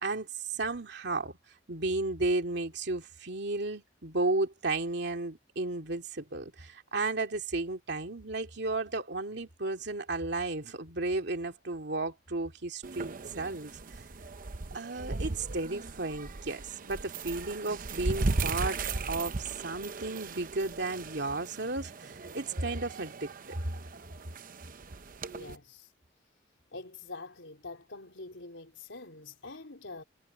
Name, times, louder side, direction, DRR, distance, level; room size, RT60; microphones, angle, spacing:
voice 1, 0.0-1.3 1.7-13.7 14.7-18.8 19.1-23.6, right 2 dB, 65° right, 2.6 m, -33 dB
sound 1, 12.8-25.6, right 3 dB, 50° right, 0.8 m, -37 dB
voice 2, 25.2-25.9 26.7-30.0, left 3 dB, 85° left, 3.9 m, -45 dB
head